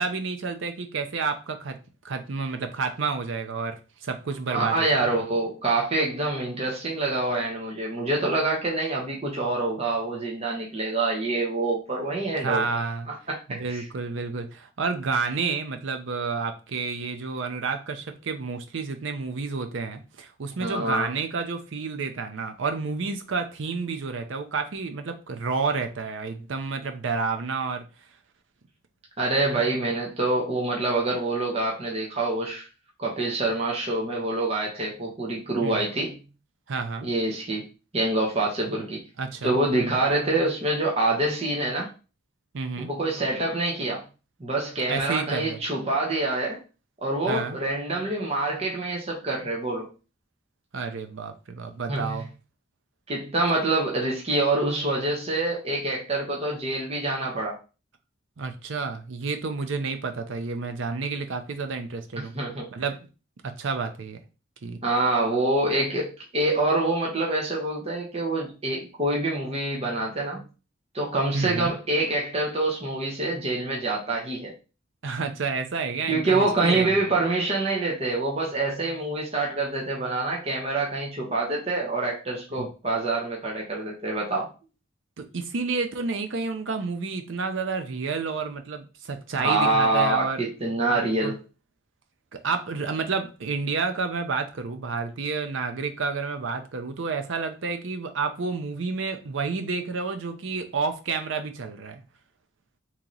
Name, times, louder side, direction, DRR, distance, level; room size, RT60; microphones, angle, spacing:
voice 1, 0.0-1.8 2.0-5.2 12.4-13.1 13.5-27.8 35.6-35.8 36.7-37.1 39.2-40.0 42.5-42.9 44.9-45.6 47.3-47.6 50.7-52.3 58.4-62.3 62.7-63.0 63.6-64.2 64.6-64.8 71.3-71.7 75.0-76.9 82.6-82.7 85.2-90.4 90.9-91.3 92.3-102.0, right 4 dB, 70° right, 7 dB, 0.6 m, -30 dB
voice 2, 4.5-12.8 13.1-13.8 20.6-21.1 29.2-32.7 33.0-36.2 37.0-37.6 37.9-39.0 39.4-41.9 42.9-44.0 44.4-46.6 47.0-49.9 51.9-52.2 53.1-57.6 62.2-62.7 64.8-70.4 70.9-74.5 76.1-84.5 89.4-91.4, right 2 dB, 30° right, -2 dB, 0.8 m, -26 dB
3.1 x 2.9 x 3.8 m, 0.33 s
head